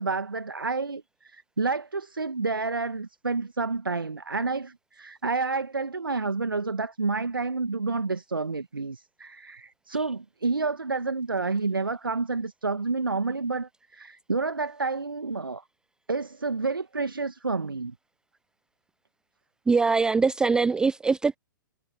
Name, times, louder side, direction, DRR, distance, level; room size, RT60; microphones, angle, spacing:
voice 1, 0.0-15.6 16.1-17.9, right 3 dB, 80° right, 1.3 m, -29 dB
voice 2, 19.7-21.4, right 4 dB, 5° right, 0.4 m, -22 dB
figure-of-eight pair, 115°, 11 cm